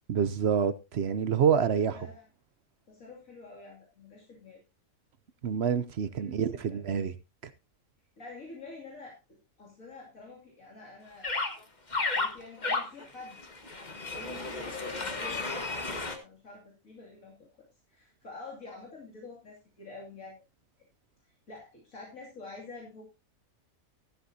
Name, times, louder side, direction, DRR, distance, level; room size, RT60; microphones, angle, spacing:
voice 1, 0.1-2.0 5.4-7.1, right 7 dB, 55° right, 0.9 m, -27 dB
voice 2, 1.6-2.3 2.9-4.6 6.2-6.8 8.2-11.3 11.9-13.4 14.0-20.4 21.2-23.0, left 3 dB, 70° left, 3.0 m, -48 dB
sound 1, 11.2-11.5 11.9-16.2, left 3 dB, 35° left, 1.5 m, -32 dB
13.5 x 11.5 x 2.7 m
omnidirectional pair, 1.5 m